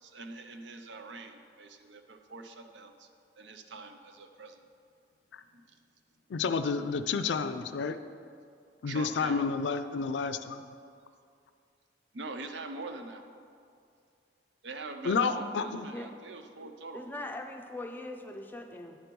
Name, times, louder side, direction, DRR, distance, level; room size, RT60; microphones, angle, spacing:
voice 1, 0.0-3.1 3.4-4.7 5.5-5.8 8.9-9.4 12.1-13.3 14.6-17.1, right 3 dB, 90° right, 6 dB, 0.6 m, -43 dB
voice 2, 6.3-8.0 8.8-10.6 15.0-15.9, left 5 dB, 85° left, 11 dB, 0.4 m, -30 dB
voice 3, 16.9-19.0, left 2 dB, 10° left, 3 dB, 0.5 m, -41 dB
10.5 x 4.5 x 5.3 m, 2.4 s
head